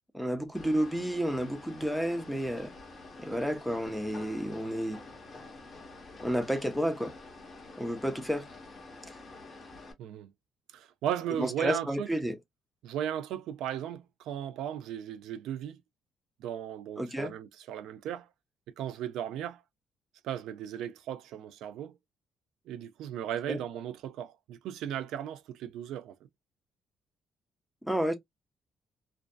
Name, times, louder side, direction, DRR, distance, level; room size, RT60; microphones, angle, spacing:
voice 1, 0.1-2.7 3.2-5.0 6.2-7.1 7.8-8.5 11.4-12.4 17.0-17.3 23.5-23.6 27.8-28.1, equal, ahead, 0.4 m, -31 dB
sound 1, 0.5-9.9, left 3 dB, 25° left, 0.8 m, -48 dB
voice 2, 10.0-10.3 10.7-12.1 12.8-15.8 16.4-18.3 18.8-19.6 20.2-22.0 22.7-26.2, right 10 dB, 85° right, 0.3 m, -36 dB
2.6 x 2.2 x 2.2 m
cardioid pair, 150°, 0 cm